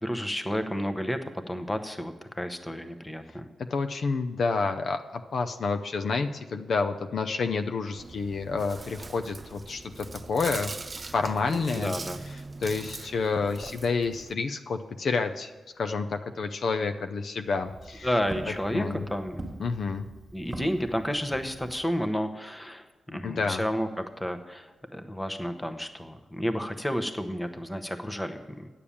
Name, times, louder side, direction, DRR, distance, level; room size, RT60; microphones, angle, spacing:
voice 1, 0.0-3.5 11.5-12.2 18.0-19.5 20.3-22.8 23.1-23.9 24.2-28.7, equal, 10° left, 8 dB, 0.9 m, -31 dB
voice 2, 3.7-10.7 11.1-11.9 12.6-15.5 15.8-18.1 18.7-19.0 19.6-20.1 23.1-23.6, left 4 dB, 55° left, 7 dB, 0.6 m, -29 dB
Chewing mastication, 8.0-14.3, right 3 dB, 25° right, 0.4 m, -41 dB
Walk footsteps, 17.5-22.0, right 1 dB, 10° right, 1.7 m, -43 dB
10.0 x 6.9 x 7.1 m, 1.3 s
cardioid pair, 110°, 0 cm